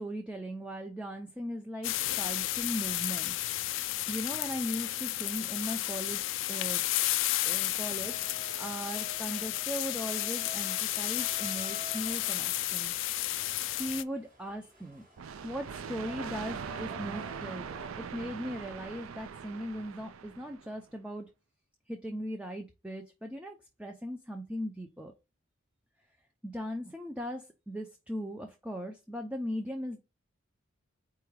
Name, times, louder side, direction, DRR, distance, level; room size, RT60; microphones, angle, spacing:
voice 1, 0.0-3.3 4.1-6.8 7.4-12.9 13.6-15.0 15.4-17.7 18.0-21.3 21.9-25.1 26.4-30.0, equal, 5° right, 0.4 m, -38 dB
sound 1, 1.8-14.0, left 15 dB, 65° left, 0.3 m, -32 dB
sound 2, 8.0-17.9, right 1 dB, 40° right, 1.6 m, -50 dB
sound 3, 15.2-20.7, right 6 dB, 80° right, 0.4 m, -41 dB
4.7 x 2.3 x 4.7 m
head